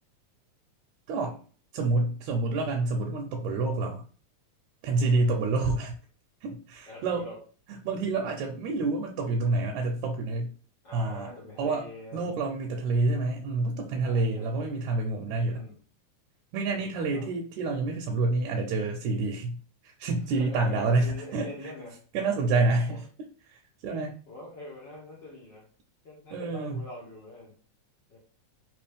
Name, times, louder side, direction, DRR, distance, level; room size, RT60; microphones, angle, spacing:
voice 1, 1.7-4.0 4.8-6.0 6.4-7.3 7.7-10.5 10.9-11.3 11.6-11.8 12.1-15.6 16.5-19.6 19.8-21.5 22.1-23.0 23.5-24.1 26.3-26.8, right 3 dB, 80° right, 2 dB, 1.9 m, -28 dB
voice 2, 6.9-7.4 10.8-12.5 14.0-14.8 15.5-15.7 16.7-17.3 20.3-22.0 22.9-23.0 24.3-25.7 26.0-27.5 28.1-28.2, left 2 dB, 60° left, -5 dB, 1.2 m, -44 dB
4.4 x 3.0 x 3.4 m, 0.41 s
omnidirectional pair, 3.4 m